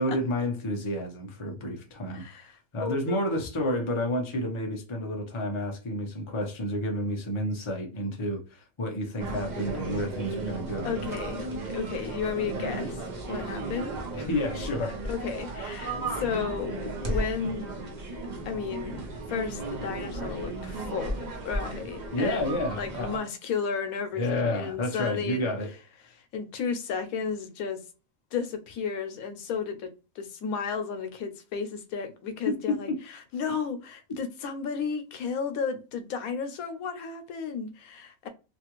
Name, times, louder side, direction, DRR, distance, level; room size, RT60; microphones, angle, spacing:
voice 1, 0.0-2.2 2.7-10.9 14.1-15.0 22.1-23.1 24.1-25.7 32.5-33.0, left 1 dB, 30° left, 0.6 m, -30 dB
voice 2, 2.1-3.4 10.8-11.5 11.7-14.0 15.0-17.7 18.5-19.0 19.3-25.5 26.1-27.8 28.3-29.9 30.2-32.9 33.3-38.3, left 6 dB, 90° left, 1.1 m, -33 dB
sound 1, 9.2-23.2, right 2 dB, 40° right, 0.7 m, -35 dB
3.1 x 2.4 x 3.0 m
omnidirectional pair, 1.5 m